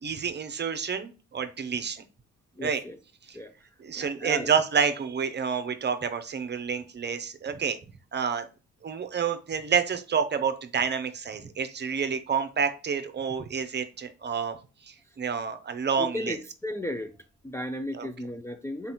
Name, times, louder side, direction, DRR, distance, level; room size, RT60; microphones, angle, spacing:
voice 1, 0.0-2.0 2.6-2.8 3.3-3.4 3.8-7.8 8.1-8.4 8.8-14.6 14.9-16.4 17.9-18.1, right 6 dB, 35° right, 8 dB, 0.7 m, -29 dB
voice 2, 2.6-3.0 3.3-3.5 3.9-4.5 16.0-17.1 17.4-18.9, left 1 dB, 10° left, 4 dB, 0.4 m, -35 dB
4.1 x 4.0 x 3.0 m, 0.33 s
cardioid pair, 90°, 30 cm